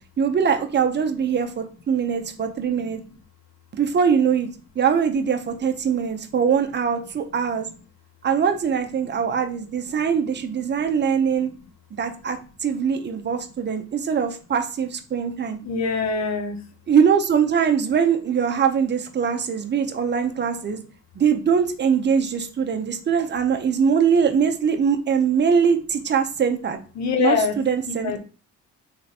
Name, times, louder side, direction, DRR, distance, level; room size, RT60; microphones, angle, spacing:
voice 1, 0.2-3.0 3.7-4.5 4.8-7.7 8.2-11.5 12.0-15.6 16.9-20.8 21.2-26.8 27.2-28.2, right 7 dB, 35° right, 5 dB, 0.7 m, -22 dB
voice 2, 15.6-16.6 27.0-27.6 27.9-28.2, left 5 dB, 65° left, 6 dB, 1.0 m, -24 dB
3.4 x 3.0 x 4.1 m, 0.36 s
cardioid pair, 90°, 30 cm